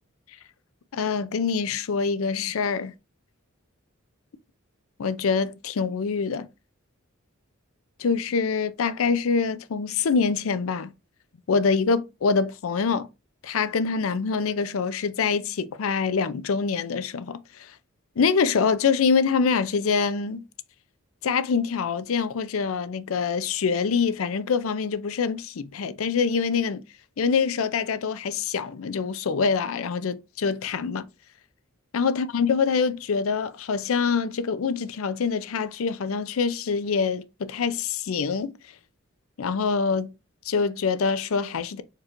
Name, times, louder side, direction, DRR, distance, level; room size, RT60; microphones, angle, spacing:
voice 1, 0.9-2.9 5.0-6.5 8.0-10.9 11.5-13.1 13.4-17.4 18.2-20.4 21.2-26.8 27.2-31.1 31.9-38.5 39.4-40.1 40.5-41.8, left 5 dB, 80° left, 0.5 m, -25 dB
4.6 x 2.5 x 4.4 m
head